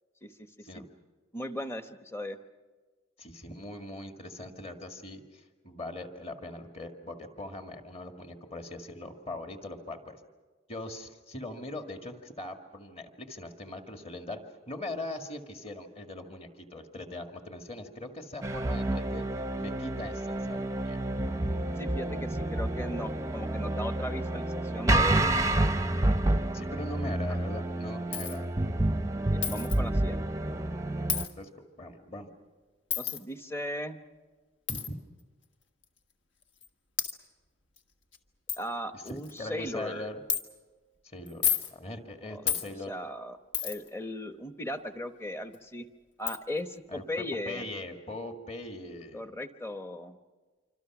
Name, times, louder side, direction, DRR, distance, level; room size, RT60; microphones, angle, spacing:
voice 1, 1.3-2.4 21.8-24.5 24.7-25.5 29.3-30.3 33.0-34.0 38.6-40.1 42.3-42.4 42.9-43.4 43.6-45.9 46.2-47.7 49.1-50.2, left 1 dB, 10° left, 8 dB, 0.9 m, -37 dB
voice 2, 3.2-10.2 10.7-14.4 14.7-19.2 19.6-21.0 26.5-28.5 31.0-31.1 31.4-32.3 34.7-35.0 38.9-40.2 41.0-42.9 46.9-49.3, left 2 dB, 30° left, 5 dB, 1.9 m, -41 dB
sound 1, 18.4-31.3, right 1 dB, 15° right, 0.7 m, -29 dB
Coin (dropping), 28.1-28.4 29.4-29.8 31.1-31.3 32.9-33.2 34.7-34.9 35.8-35.9 36.6-36.7 37.0-37.1 37.8-37.9 38.1-38.2 38.5-38.6 39.1-39.4 40.3-40.4 41.3-41.7 42.5-42.7 43.5-43.9 45.5-45.6 46.3-46.4, left 8 dB, 65° left, 1.5 m, -30 dB
27.0 x 25.5 x 6.1 m, 1.4 s
head